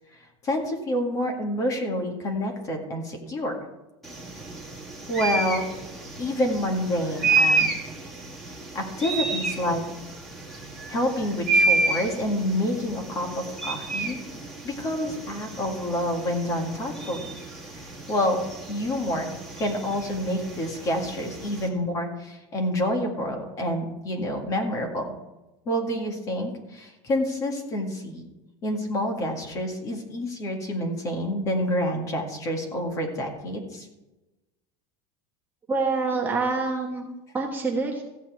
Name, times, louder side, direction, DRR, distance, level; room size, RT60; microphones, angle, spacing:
voice 1, 0.4-3.6 5.1-5.7 6.2-7.7 8.7-9.8 10.9-14.2 14.6-17.4 17.7-18.4 18.7-19.3 19.6-25.1 25.7-28.2 28.6-33.9, left 1 dB, 25° left, 2 dB, 2.0 m, -28 dB
sound 1, 4.0-21.7, right 3 dB, ahead, 1.9 m, -30 dB
voice 2, 35.7-37.0 37.3-38.0, right 3 dB, 15° right, -1 dB, 1.2 m, -26 dB
15.0 x 5.7 x 8.4 m, 1.0 s
supercardioid pair, 180°, 13 cm